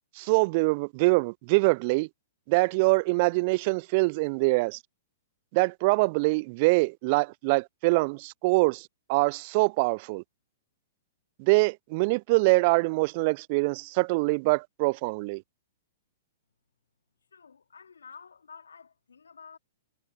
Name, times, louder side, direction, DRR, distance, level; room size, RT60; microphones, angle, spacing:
voice 1, 0.2-2.1 2.5-4.8 5.5-10.2 11.4-15.4, right 27 dB, 45° right, 0.4 m, -24 dB
voice 2, 17.3-19.6, left 6 dB, 75° left, 2.6 m, -50 dB
figure-of-eight pair, 110°, 0 cm